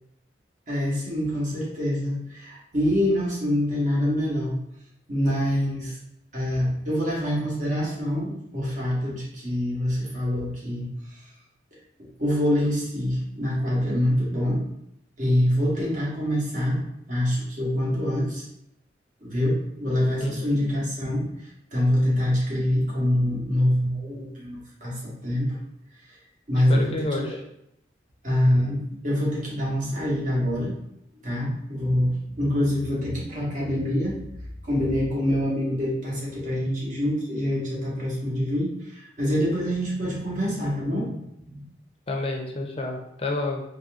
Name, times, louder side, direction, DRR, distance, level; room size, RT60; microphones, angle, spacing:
voice 1, 0.7-4.6 5.1-6.0 6.3-11.3 12.0-14.6 15.2-16.8 17.1-18.4 19.2-25.6 26.5-26.9 28.2-30.7 31.2-34.2 34.6-41.6, equal, 45° right, -5 dB, 1.3 m, -25 dB
voice 2, 20.2-20.6 26.7-27.4 42.1-43.6, left 2 dB, 30° left, 2 dB, 0.6 m, -29 dB
4.0 x 3.4 x 2.4 m, 0.77 s
head